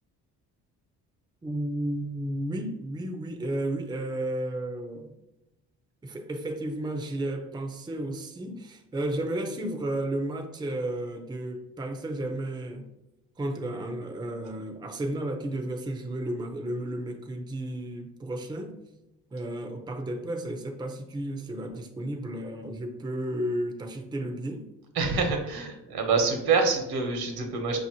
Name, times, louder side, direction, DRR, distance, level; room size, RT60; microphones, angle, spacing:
voice 1, 1.4-5.1 6.0-12.9 13.4-18.7 19.3-24.7 25.8-26.0, right 1 dB, 10° right, 0.5 m, -33 dB
voice 2, 24.9-27.8, right 4 dB, 70° right, 1.1 m, -26 dB
5.5 x 2.7 x 2.9 m
supercardioid pair, 75°, 39 cm